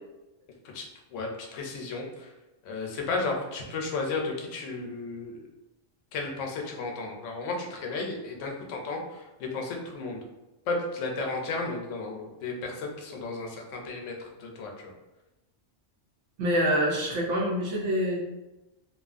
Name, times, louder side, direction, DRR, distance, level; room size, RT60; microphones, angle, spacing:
voice 1, 0.7-2.3 2.6-5.5 6.1-10.2 10.7-14.9, left 3 dB, 85° left, 1 dB, 0.9 m, -34 dB
voice 2, 16.4-18.2, equal, 80° right, -3 dB, 0.9 m, -26 dB
2.8 x 2.3 x 2.4 m, 1.0 s
omnidirectional pair, 1.2 m